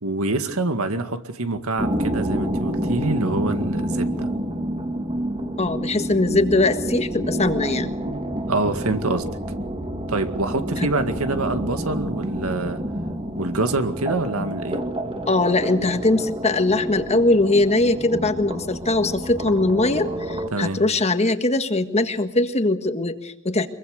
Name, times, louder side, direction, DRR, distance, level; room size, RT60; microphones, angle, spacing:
voice 1, 0.0-4.3 8.5-9.2 10.1-12.8 13.4-14.8 20.5-20.8, right 2 dB, 80° right, 8 dB, 2.0 m, -25 dB
sound 1, 1.8-20.5, right 1 dB, 25° right, 2.1 m, -28 dB
voice 2, 5.6-7.9 10.8-10.9 15.3-23.7, left 2 dB, 30° left, 9 dB, 1.5 m, -21 dB
24.5 x 23.0 x 6.6 m, 0.71 s
head